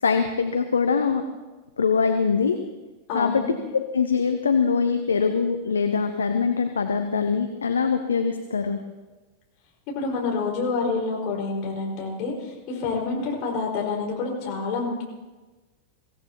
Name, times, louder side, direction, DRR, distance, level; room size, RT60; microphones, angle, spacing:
voice 1, 0.0-1.2 1.8-2.6 3.1-3.4 3.7-8.8, left 5 dB, 70° left, 7 dB, 0.9 m, -23 dB
voice 2, 3.1-3.5 9.9-15.0, left 4 dB, 40° left, -2 dB, 5.0 m, -28 dB
23.5 x 16.0 x 2.9 m, 1.2 s
figure-of-eight pair, 90°, 0 cm